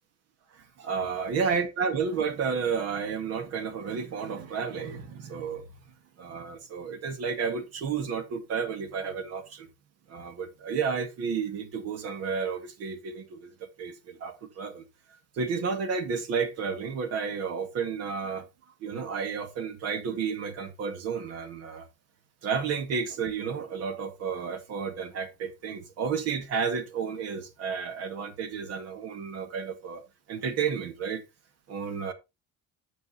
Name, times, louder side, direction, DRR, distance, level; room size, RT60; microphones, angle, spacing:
voice 1, 0.5-5.6 6.2-9.7 10.1-14.8 15.4-18.4 18.8-21.9 22.4-30.0 30.3-31.2 31.7-32.1, right 6 dB, 60° right, 2.0 m, -31 dB
9.3 x 6.7 x 4.0 m
cardioid pair, 135°, 29 cm